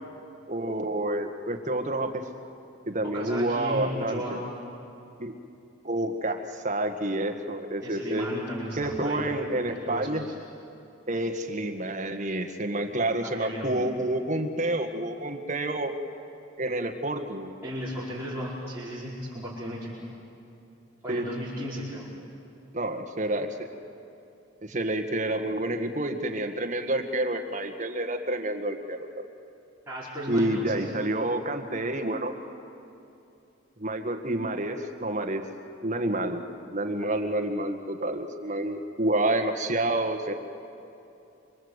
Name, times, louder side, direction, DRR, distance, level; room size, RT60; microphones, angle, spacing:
voice 1, 0.5-2.3 2.9-4.4 5.2-5.3 5.8-8.3 8.8-10.3 11.1-15.9 16.6-17.5 21.1-21.3 22.7-23.7 24.6-29.1 30.3-32.4 33.8-35.4 35.8-36.4 36.7-40.3, right 1 dB, 40° right, 5 dB, 1.8 m, -29 dB
voice 2, 3.1-4.5 7.8-9.2 9.5-10.3 12.9-13.7 17.6-19.9 21.0-22.1 29.9-30.9, equal, 15° right, -9 dB, 5.0 m, -35 dB
27.0 x 25.5 x 8.2 m, 2.8 s
head